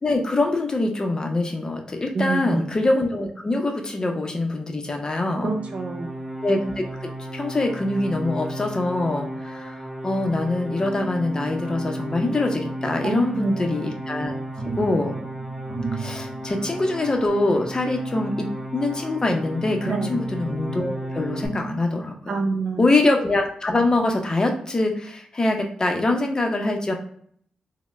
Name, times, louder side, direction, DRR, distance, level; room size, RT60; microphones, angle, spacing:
voice 1, 0.0-5.5 6.4-9.8 10.0-14.3 14.8-15.2 15.9-22.4 22.8-26.9, left 2 dB, 30° left, 3 dB, 0.6 m, -24 dB
voice 2, 2.1-2.6 5.4-6.1 13.0-13.7 19.9-20.2 22.3-22.9, right 4 dB, 60° right, 3 dB, 0.6 m, -27 dB
sound 1, 5.2-21.5, right 1 dB, 20° right, 1.2 m, -34 dB
sound 2, 13.8-19.6 20.1-21.2 21.7-21.8, right 4 dB, 15° left, 1.1 m, -37 dB
3.3 x 2.0 x 3.0 m, 0.62 s
cardioid pair, 85°, 2 cm